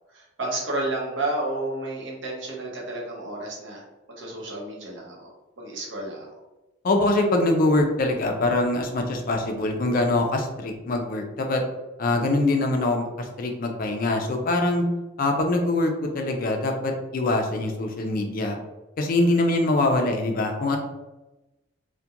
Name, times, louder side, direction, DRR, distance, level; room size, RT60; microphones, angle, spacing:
voice 1, 0.1-3.8 4.2-5.3 5.6-6.3 19.3-19.5, right 2 dB, 65° right, -3 dB, 0.7 m, -31 dB
voice 2, 6.8-11.6 12.0-14.8 15.2-18.6 19.0-20.8, left 2 dB, 45° left, 3 dB, 0.4 m, -23 dB
2.3 x 2.1 x 2.8 m, 1.0 s
head